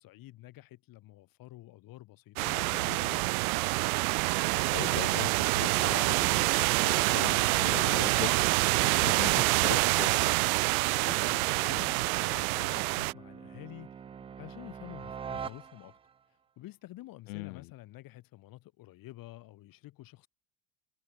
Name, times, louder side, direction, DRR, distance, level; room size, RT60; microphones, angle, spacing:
voice 1, 0.0-3.3 11.0-13.9 14.4-16.0 16.6-20.3, left 17 dB, 50° left, 6.2 m, -49 dB
sound 1, 2.4-13.1, right 27 dB, 80° right, 0.5 m, -27 dB
voice 2, 4.7-10.5 17.3-17.7, left 23 dB, 80° left, 2.6 m, -40 dB
sound 2, 10.0-16.2, right 7 dB, 15° right, 0.4 m, -46 dB
supercardioid pair, 120°, 42 cm